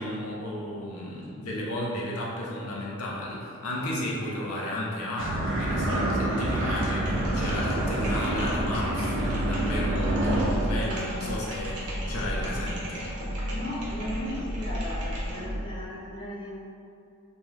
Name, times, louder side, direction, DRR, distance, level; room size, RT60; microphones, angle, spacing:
voice 1, 0.0-13.0, left 1 dB, 75° left, -5 dB, 0.6 m, -34 dB
sound 1, 5.2-10.5, right 1 dB, 60° right, 0.4 m, -27 dB
sound 2, 6.4-15.7, equal, 90° right, 0.8 m, -33 dB
sound 3, 9.7-15.6, left 2 dB, 40° left, 0.8 m, -47 dB
voice 2, 13.5-16.5, left 1 dB, 20° left, -8 dB, 0.5 m, -36 dB
2.6 x 2.3 x 3.1 m, 2.5 s
head